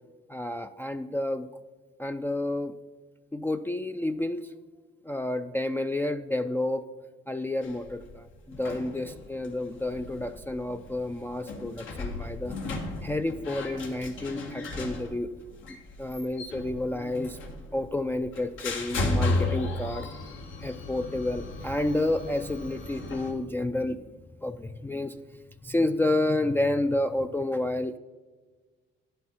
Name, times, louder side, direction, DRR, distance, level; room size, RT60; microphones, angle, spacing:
voice 1, 0.3-1.5 2.0-2.8 3.3-4.5 5.0-6.9 7.3-12.5 13.0-15.3 16.0-17.4 17.7-20.1 20.6-24.0 24.4-25.2 25.6-28.0, left 1 dB, 10° left, 6 dB, 0.3 m, -30 dB
sound 1, 7.6-23.3, left 2 dB, 80° left, 1.6 m, -35 dB
10.0 x 7.9 x 4.3 m, 1.3 s
cardioid pair, 90°, 20 cm